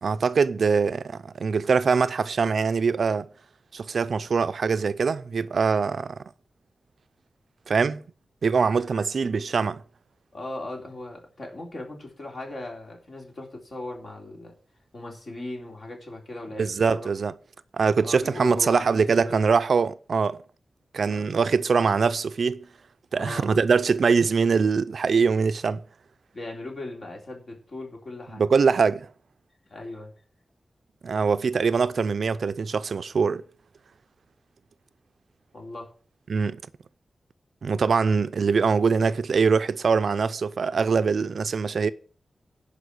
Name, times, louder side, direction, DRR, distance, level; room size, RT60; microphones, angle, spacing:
voice 1, 0.0-3.3 3.7-6.2 7.7-8.0 8.4-9.8 16.6-17.3 17.7-20.4 20.9-22.6 23.1-25.8 28.3-29.1 31.0-33.4 36.3-36.6 37.6-41.9, right 5 dB, 65° right, 0.5 m, -23 dB
voice 2, 10.3-14.5 14.9-17.1 18.0-19.5 21.0-21.2 23.2-23.7 26.3-28.4 29.7-30.1 35.5-35.9, left 2 dB, 50° left, 3.7 m, -38 dB
11.5 x 5.2 x 8.1 m
wide cardioid pair, 150°, 0 cm